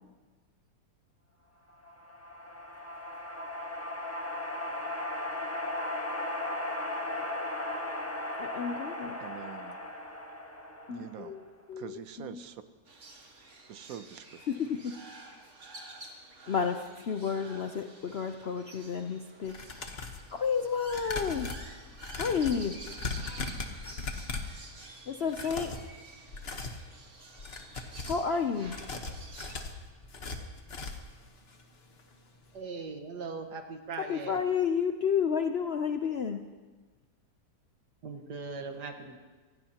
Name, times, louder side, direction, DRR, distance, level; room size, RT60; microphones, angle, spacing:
sound 1, 1.8-11.4, left 1 dB, 10° left, 1.0 m, -37 dB
voice 1, 8.4-9.2 10.9-12.4 14.5-14.9 16.5-19.6 20.3-21.5 22.2-22.8 25.1-25.7 28.1-28.8 34.1-36.4, left 6 dB, 60° left, 5 dB, 0.6 m, -31 dB
voice 2, 9.2-9.8 10.9-11.3 11.8-12.6 13.7-14.4, right 9 dB, 65° right, 11 dB, 1.1 m, -44 dB
sound 2, 12.9-29.6, right 2 dB, 45° right, 2.0 m, -50 dB
sound 3, 19.4-20.3 20.9-24.6 25.2-25.9 26.3-26.8 27.3-28.3 28.6-31.1 31.5-31.6 32.0-32.1, left 3 dB, 40° left, 1.3 m, -38 dB
voice 3, 32.5-34.4 38.0-39.2, right 4 dB, 80° right, 4 dB, 2.0 m, -40 dB
26.0 x 16.5 x 2.9 m, 1.3 s
omnidirectional pair, 1.8 m